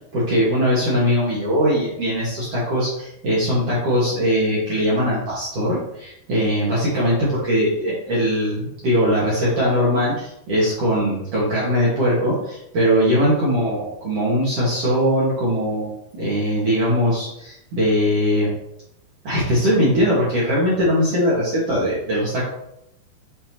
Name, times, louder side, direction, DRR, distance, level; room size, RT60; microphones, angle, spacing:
voice 1, 0.1-15.9 16.2-18.5 19.2-22.5, equal, 55° right, -7 dB, 1.8 m, -20 dB
6.5 x 6.3 x 2.9 m, 0.78 s
omnidirectional pair, 5.1 m